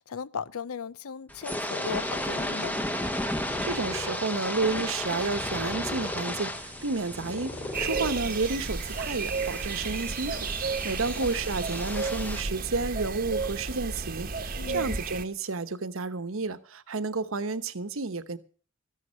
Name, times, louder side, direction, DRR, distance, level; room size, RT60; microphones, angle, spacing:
voice 1, 0.0-2.8 10.9-11.1 14.6-15.0, left 6 dB, 85° left, 0.6 m, -37 dB
sound 1, 1.3-12.4, left 1 dB, 5° left, 1.0 m, -34 dB
Purr, 3.0-8.7, left 1 dB, 25° left, 3.3 m, -40 dB
voice 2, 3.6-18.4, right 3 dB, 70° right, 1.0 m, -31 dB
sound 2, 7.7-15.2, right 4 dB, 40° right, 1.0 m, -32 dB
14.0 x 11.0 x 6.4 m
head